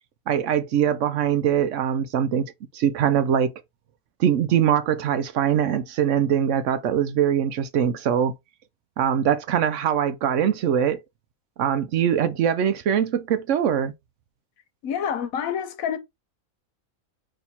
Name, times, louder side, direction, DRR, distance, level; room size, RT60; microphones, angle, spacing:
voice 1, 0.3-3.5 4.2-8.3 9.0-11.0 11.6-13.9, right 9 dB, 70° right, 0.9 m, -22 dB
voice 2, 14.8-16.0, left 8 dB, 80° left, 1.2 m, -27 dB
4.3 x 2.9 x 4.1 m
omnidirectional pair, 1.4 m